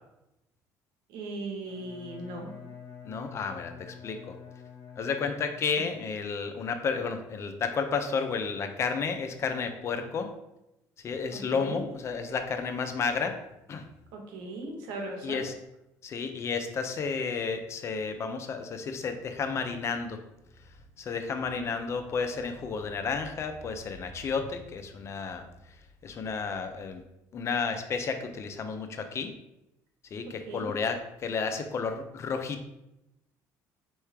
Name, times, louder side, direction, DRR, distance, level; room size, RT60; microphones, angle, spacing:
voice 1, 1.1-2.5 5.8-5.9 11.3-11.8 14.1-15.4 21.5-21.7 30.5-30.7, right 2 dB, 85° right, 1 dB, 1.1 m, -38 dB
Bowed string instrument, 1.6-5.9, left 7 dB, 65° left, 1.1 m, -47 dB
voice 2, 3.0-4.3 5.0-10.3 11.0-13.4 13.7-13.8 15.2-15.5 16.0-20.2 21.0-25.4 26.0-27.0 27.3-29.3 30.1-32.6, left 5 dB, 40° left, 7 dB, 0.5 m, -32 dB
4.7 x 3.0 x 3.4 m, 0.89 s
cardioid pair, 115°, 7 cm